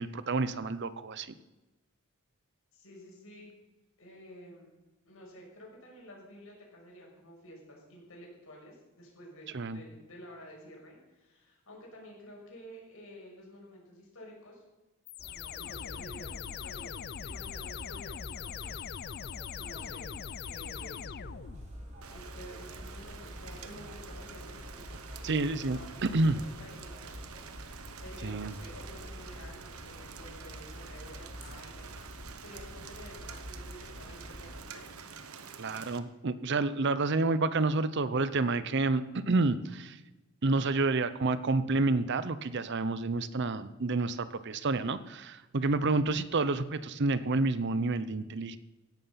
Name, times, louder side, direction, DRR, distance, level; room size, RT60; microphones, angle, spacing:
voice 1, 0.0-1.3 9.5-9.8 25.2-25.8 26.1-26.4 28.2-28.5 35.6-40.0 40.4-48.6, right 3 dB, 50° right, 14 dB, 0.6 m, -29 dB
voice 2, 2.7-3.5 4.0-4.7 5.1-14.6 15.3-16.9 17.2-18.8 19.5-20.1 20.4-21.0 22.1-24.6 25.1-27.1 27.7-34.9, equal, 65° left, -2 dB, 6.2 m, -51 dB
sound 1, 15.1-21.9, left 8 dB, 45° left, 0.4 m, -41 dB
sound 2, 15.2-34.6, equal, 30° right, 3.1 m, -47 dB
Rain, 22.0-36.0, right 5 dB, 75° right, 1.1 m, -48 dB
16.5 x 11.0 x 5.7 m, 1.1 s
head